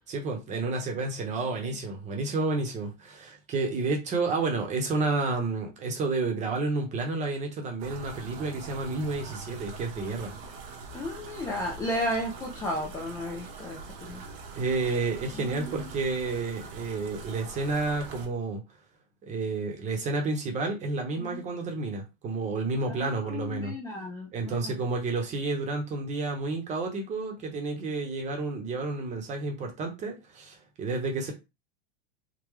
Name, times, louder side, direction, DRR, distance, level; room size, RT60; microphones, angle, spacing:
voice 1, 0.1-10.3 14.5-18.6 19.2-23.7 24.3-31.3, right 3 dB, 25° right, 0.9 m, -30 dB
sound 1, 7.8-18.3, right 4 dB, 65° right, 1.1 m, -43 dB
voice 2, 10.9-14.2 15.3-16.1 21.2-21.4 22.9-24.7, left 1 dB, 10° left, 0.3 m, -34 dB
3.7 x 2.2 x 3.1 m
supercardioid pair, 155°, 31 cm